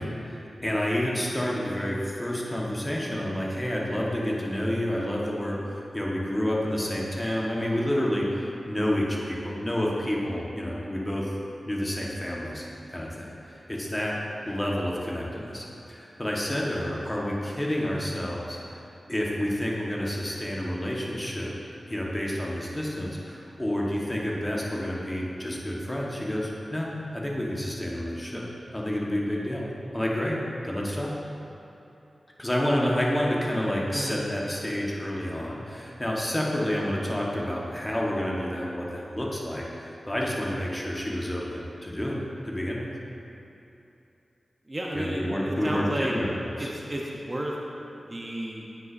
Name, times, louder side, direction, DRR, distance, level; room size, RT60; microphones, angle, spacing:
voice 1, 0.0-11.3 11.6-12.6 12.9-14.2 14.5-18.8 19.1-21.5 21.9-28.5 28.7-29.7 29.9-31.1 32.4-42.9 44.9-46.7, left 1 dB, 20° left, -3 dB, 1.2 m, -29 dB
voice 2, 33.9-34.2 44.7-46.1 46.6-47.5 48.1-48.7, right 1 dB, 30° right, -2 dB, 0.7 m, -32 dB
9.2 x 5.5 x 2.6 m, 2.9 s
cardioid pair, 45°, 0 cm